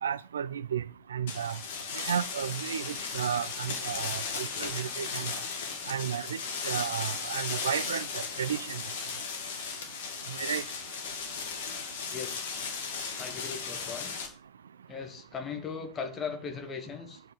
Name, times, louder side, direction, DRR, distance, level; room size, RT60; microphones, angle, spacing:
voice 1, 0.0-0.8 1.1-1.6 2.0-5.3 5.9-6.4 6.6-8.8 10.4-10.6, right 8 dB, 65° right, 0.4 m, -33 dB
sound 1, 1.3-14.3, left 5 dB, 55° left, 2.6 m, -36 dB
voice 2, 12.1-12.5 13.1-14.1 14.9-17.2, left 6 dB, 25° left, 2.1 m, -38 dB
9.0 x 5.6 x 7.9 m
figure-of-eight pair, 90°, 0 cm